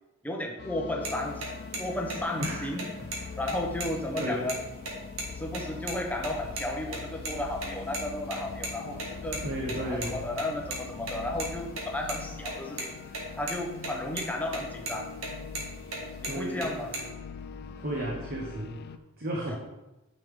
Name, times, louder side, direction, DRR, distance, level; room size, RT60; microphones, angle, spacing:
voice 1, 0.2-1.5 1.8-2.8 3.4-4.6 5.3-9.4 9.8-12.9 13.4-15.1 16.2-17.1 19.5-19.6, left 1 dB, 10° left, 1 dB, 0.8 m, -34 dB
sound 1, 0.6-19.0, left 5 dB, 50° left, 0.3 m, -42 dB
sound 2, 1.0-1.1 1.4-1.5 1.7-1.8 2.1-2.5 2.8-2.9 3.1-3.2 3.5-4.5 4.8-4.9 5.2-5.3 5.5-5.9 6.2-6.7 6.9-8.0 8.3-10.8 11.1-12.8 13.1-13.2 13.5-13.9 14.2-14.6 14.9-16.0 16.2-17.0, right 3 dB, 85° right, 1.9 m, -35 dB
voice 2, 2.4-2.7 3.0-3.3 4.1-4.5 9.4-10.2 16.2-16.8 17.7-19.6, right 1 dB, 45° right, -2 dB, 1.1 m, -34 dB
9.2 x 5.2 x 3.6 m, 1.0 s
head